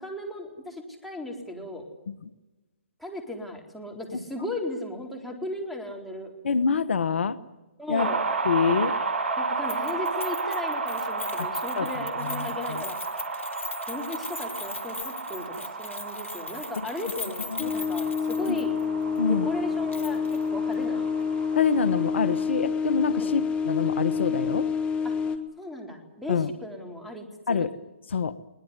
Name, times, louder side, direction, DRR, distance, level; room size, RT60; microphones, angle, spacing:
voice 1, 0.0-1.8 3.0-6.3 7.8-8.2 9.4-13.0 13.9-18.7 19.2-21.0 23.1-23.4 25.6-27.7, left 1 dB, ahead, 2 dB, 4.2 m, -36 dB
voice 2, 6.4-7.4 7.9-8.1 8.4-8.9 11.4-11.5 11.8-12.8 17.5-17.7 18.5-18.6 19.2-19.5 21.6-24.7 26.3-26.5 27.5-27.8 28.1-28.4, left 5 dB, 70° left, 16 dB, 1.1 m, -26 dB
sound 1, 8.0-22.4, right 4 dB, 60° right, 7.1 m, -33 dB
Keys jangling, 9.7-18.8 19.1-19.2 19.9-20.4 20.7-20.8, left 4 dB, 90° left, 3.2 m, -40 dB
sound 2, 17.6-25.4, left 6 dB, 15° left, 1.9 m, -28 dB
22.0 x 19.5 x 9.8 m, 1.1 s
hypercardioid pair, 135°, 7 cm